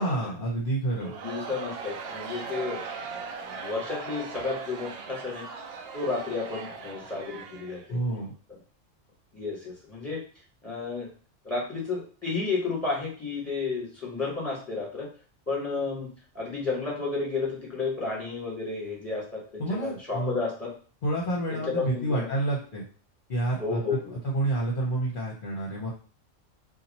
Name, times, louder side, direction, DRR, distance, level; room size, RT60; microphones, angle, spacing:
voice 1, 0.0-1.1 7.9-8.3 19.6-20.4 21.0-22.8 23.3-25.9, right 2 dB, 50° left, -3 dB, 0.9 m, -29 dB
voice 2, 1.0-2.8 3.1-5.4 5.9-8.0 9.3-10.2 10.6-11.1 11.4-15.1 15.5-16.1 16.3-20.7 21.5-22.3 23.6-24.2, left 4 dB, 10° left, -4 dB, 1.4 m, -32 dB
Crowd, 1.0-8.2, right 5 dB, 60° right, 0.7 m, -39 dB
2.8 x 2.5 x 4.1 m, 0.40 s
omnidirectional pair, 1.3 m